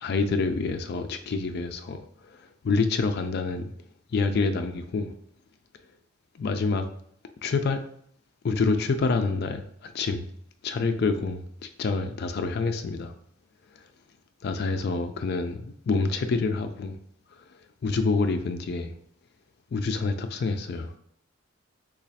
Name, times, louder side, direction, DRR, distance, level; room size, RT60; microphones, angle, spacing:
voice 1, 0.0-2.0 2.3-3.7 4.1-5.1 6.4-6.9 7.4-7.8 8.4-10.3 10.6-11.4 11.8-13.1 14.4-16.9 17.8-18.9 19.7-20.9, left 4 dB, 45° left, 0.3 m, -27 dB
3.0 x 2.3 x 4.1 m
head